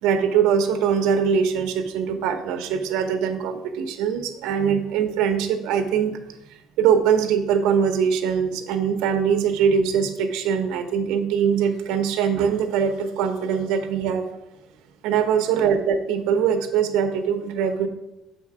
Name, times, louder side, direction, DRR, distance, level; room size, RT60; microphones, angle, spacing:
voice 1, 0.0-6.1 6.8-14.2 15.0-17.9, right 7 dB, 80° right, 7 dB, 0.8 m, -22 dB
7.4 x 4.5 x 4.8 m, 0.93 s
cardioid pair, 155°, 0 cm